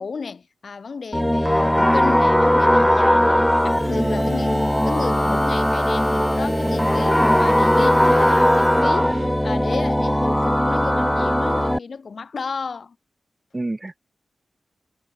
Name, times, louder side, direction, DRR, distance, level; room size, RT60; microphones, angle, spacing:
voice 1, 0.0-13.0, left 5 dB, 55° left, 5.3 m, -32 dB
sound 1, 1.1-11.8, equal, 5° left, 1.4 m, -19 dB
sound 2, 3.4-9.2, left 3 dB, 40° left, 5.3 m, -45 dB
Bowed string instrument, 3.8-9.5, right 5 dB, 65° right, 1.8 m, -39 dB
voice 2, 3.9-4.3 13.5-14.0, right 2 dB, 20° right, 1.5 m, -29 dB
wide cardioid pair, 105°, 0 cm